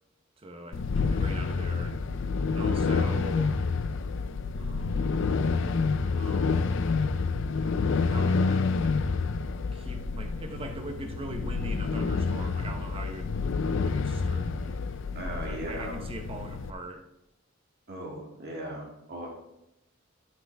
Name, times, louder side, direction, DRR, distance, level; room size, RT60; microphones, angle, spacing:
voice 1, 0.4-2.0 2.5-3.6 4.5-5.1 5.9-6.7 7.6-9.0 9.7-13.3 13.7-14.8 15.3-17.0, right 2 dB, 30° right, 5 dB, 0.8 m, -42 dB
sound 1, 0.7-16.7, left 4 dB, 65° left, 0.5 m, -28 dB
voice 2, 15.1-16.0 17.9-19.3, right 1 dB, 55° right, -1 dB, 1.9 m, -38 dB
9.3 x 7.4 x 3.4 m, 0.87 s
head